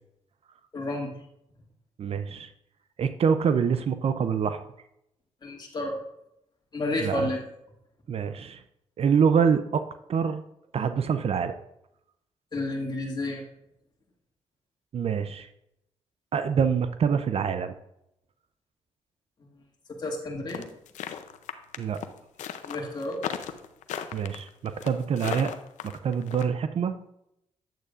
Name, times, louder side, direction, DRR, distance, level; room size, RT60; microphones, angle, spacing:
voice 1, 0.7-1.1 5.4-6.0 6.7-7.4 12.5-13.4 20.0-20.6 22.6-23.2, left 2 dB, 35° left, -1 dB, 2.2 m, -31 dB
voice 2, 2.0-2.5 3.0-4.6 7.0-7.3 8.1-8.6 9.0-9.8 10.1-10.4 10.7-11.5 14.9-15.5 16.3-17.7 21.8-22.0 24.1-25.5 25.8-27.1, right 6 dB, 55° right, 10 dB, 0.5 m, -25 dB
sound 1, 20.5-26.4, left 9 dB, 85° left, 0.6 m, -36 dB
9.1 x 8.1 x 2.5 m, 0.81 s
cardioid pair, 75°, 12 cm